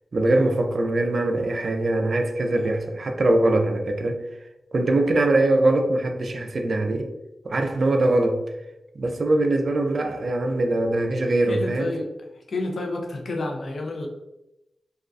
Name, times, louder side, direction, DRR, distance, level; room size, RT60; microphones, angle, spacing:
voice 1, 0.1-4.2 4.7-7.1 7.4-8.4 9.0-11.9, right 2 dB, 60° right, 0.3 m, -22 dB
voice 2, 11.2-12.1 12.4-14.1, left 2 dB, 70° left, 0.4 m, -31 dB
2.3 x 2.2 x 2.4 m
cardioid pair, 50°, 0 cm